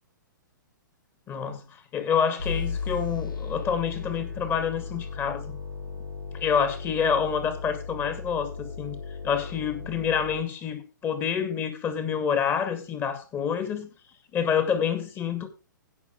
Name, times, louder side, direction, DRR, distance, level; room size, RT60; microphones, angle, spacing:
voice 1, 1.3-5.5 6.3-9.0 9.2-13.9 14.3-15.5, left 7 dB, 20° left, 2.3 m, -27 dB
sound 1, 2.4-10.4, left 5 dB, 80° left, 7.7 m, -35 dB
16.0 x 6.3 x 5.1 m
figure-of-eight pair, 115°, 11 cm